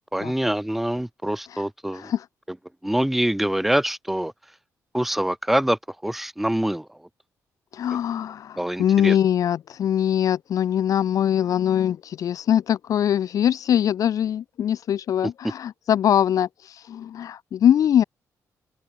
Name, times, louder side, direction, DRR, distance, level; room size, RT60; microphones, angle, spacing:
voice 1, 0.1-2.1 2.8-4.3 4.9-6.9 8.6-9.2, right 1 dB, 5° right, 0.8 m, -25 dB
voice 2, 1.9-2.2 7.7-16.5 16.9-18.0, left 10 dB, 65° left, 1.6 m, -22 dB
open air
cardioid pair, 130°, 6 cm